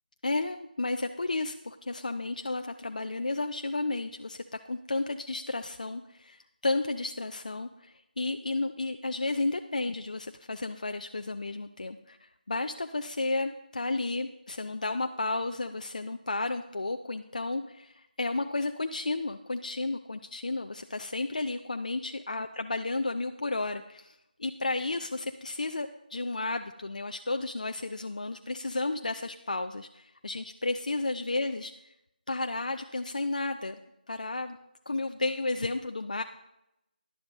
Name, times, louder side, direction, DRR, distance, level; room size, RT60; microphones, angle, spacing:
voice 1, 0.2-31.9 32.3-33.8 34.1-34.6 34.9-36.2, left 2 dB, 50° left, 7 dB, 0.4 m, -32 dB
12.0 x 10.5 x 2.6 m, 0.87 s
figure-of-eight pair, 165°, 5 cm